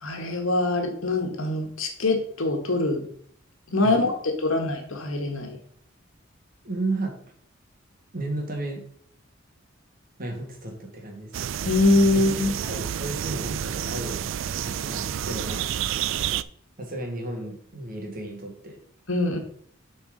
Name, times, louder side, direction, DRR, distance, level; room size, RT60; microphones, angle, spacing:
voice 1, 0.0-3.0 3.7-5.6 11.6-12.5 19.1-19.4, left 2 dB, 80° left, 4 dB, 1.6 m, -23 dB
voice 2, 6.6-7.2 8.1-8.8 10.2-11.3 12.1-14.3 14.6-15.7 16.8-18.8, right 2 dB, 45° right, 1 dB, 2.0 m, -33 dB
sound 1, 11.3-16.4, right 10 dB, 70° right, 0.3 m, -29 dB
7.1 x 4.5 x 5.1 m, 0.62 s
head